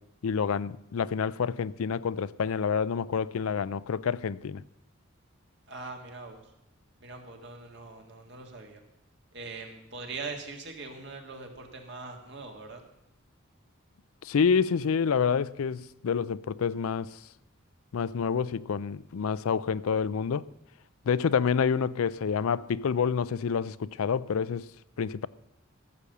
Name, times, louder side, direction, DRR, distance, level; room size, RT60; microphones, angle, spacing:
voice 1, 0.2-4.6 14.2-17.1 17.9-20.5 21.1-24.7 25.0-25.3, left 6 dB, 90° left, 0.4 m, -28 dB
voice 2, 5.7-6.4 7.0-8.8 9.3-12.8, right 3 dB, 55° right, 1.8 m, -42 dB
15.0 x 7.0 x 6.7 m
head